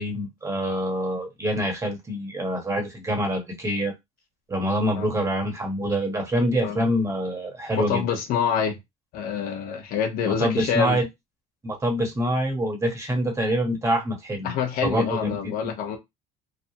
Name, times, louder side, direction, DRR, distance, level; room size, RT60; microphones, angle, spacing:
voice 1, 0.0-3.9 4.5-8.0 10.2-11.1 11.6-14.5 14.8-15.7, equal, 20° right, 1.2 m, -26 dB
voice 2, 7.8-8.7 9.1-11.0 14.4-16.0, left 7 dB, 70° left, 0.8 m, -26 dB
3.3 x 2.1 x 2.8 m
cardioid pair, 110°, 15 cm